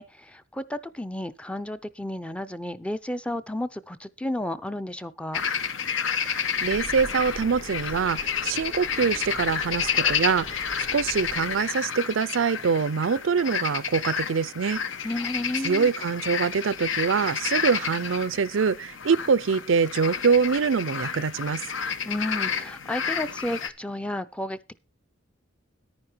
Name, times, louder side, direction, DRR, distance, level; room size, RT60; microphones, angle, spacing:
voice 1, 0.0-5.4 15.0-15.9 22.1-24.8, left 1 dB, 5° left, 0.5 m, -32 dB
sound 1, 5.3-23.7, left 7 dB, 70° left, 1.0 m, -30 dB
voice 2, 6.3-14.8 15.6-21.6, right 5 dB, 70° right, 0.5 m, -24 dB
sound 2, 6.5-11.6, left 1 dB, 45° left, 1.2 m, -42 dB
10.5 x 9.6 x 4.4 m
head